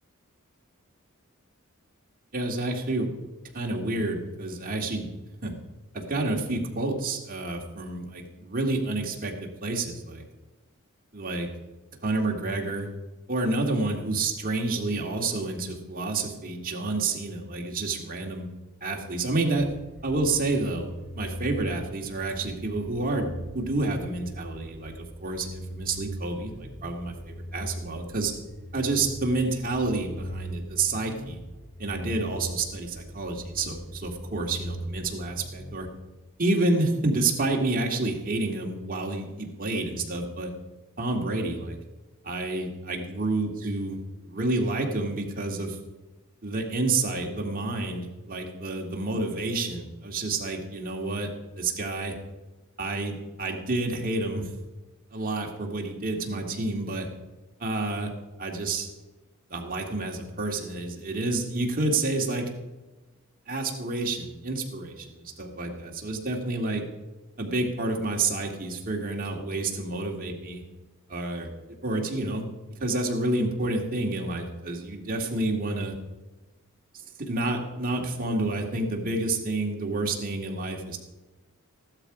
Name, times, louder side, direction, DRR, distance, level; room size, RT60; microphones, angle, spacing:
voice 1, 2.3-3.1 3.5-5.1 5.4-5.5 5.9-10.2 11.1-11.5 12.0-12.9 13.3-18.5 18.8-19.7 20.0-20.9 21.1-23.3 23.5-28.4 28.7-31.4 31.8-35.9 36.4-40.5 41.0-41.8 42.2-44.0 44.2-45.8 46.4-51.3 51.6-52.1 52.8-54.5 55.1-57.1 57.6-58.1 58.4-58.9 59.5-62.4 63.5-66.8 67.4-70.6 71.1-71.5 71.8-72.4 72.8-75.9 77.3-81.0, right 2 dB, 40° right, 1 dB, 2.1 m, -29 dB
sound 1, 19.6-36.4, equal, 5° left, 2.3 m, -40 dB
15.0 x 12.0 x 4.9 m, 1.1 s
head